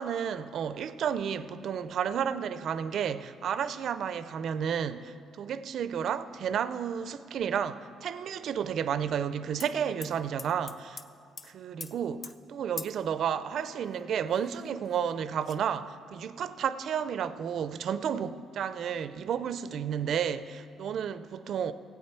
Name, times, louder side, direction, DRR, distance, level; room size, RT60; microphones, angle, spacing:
voice 1, 0.0-11.0 11.4-21.7, right 8 dB, 65° right, 0.4 m, -32 dB
sound 1, 9.6-9.7 10.0-11.1 11.4-11.5 11.8-11.9 12.2-12.3 12.8-13.0 13.9-14.0 14.3-15.0 15.4-15.6, left 4 dB, 40° left, 0.5 m, -42 dB
17.0 x 8.2 x 4.4 m
cardioid pair, 115°, 0 cm